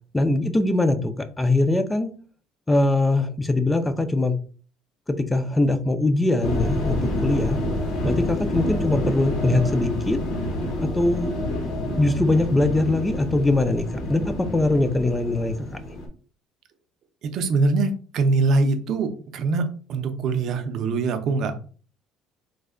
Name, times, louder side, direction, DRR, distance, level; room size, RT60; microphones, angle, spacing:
voice 1, 0.1-2.1 2.7-4.4 5.1-7.6 8.0-10.2 10.9-11.3 12.0-15.5 15.9-16.0, left 2 dB, 10° left, 10 dB, 0.3 m, -22 dB
sound 1, 6.4-16.1, left 1 dB, 70° left, 0.9 m, -28 dB
voice 2, 17.2-21.6, right 3 dB, 50° right, 7 dB, 0.5 m, -23 dB
3.2 x 2.1 x 3.6 m, 0.41 s
cardioid pair, 155°, 0 cm